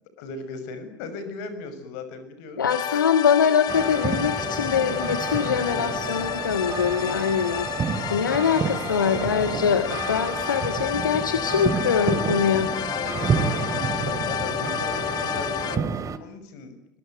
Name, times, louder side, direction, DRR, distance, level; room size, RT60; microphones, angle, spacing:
voice 1, 0.2-2.6 13.1-17.0, left 4 dB, 60° left, 11 dB, 6.3 m, -38 dB
voice 2, 2.6-12.7, left 7 dB, 80° left, 10 dB, 1.7 m, -23 dB
sound 1, 2.7-15.8, left 11 dB, 40° left, 1.7 m, -31 dB
sound 2, 3.7-16.2, right 6 dB, 30° right, 2.7 m, -30 dB
26.5 x 23.0 x 9.3 m, 0.67 s
figure-of-eight pair, 70°, 11 cm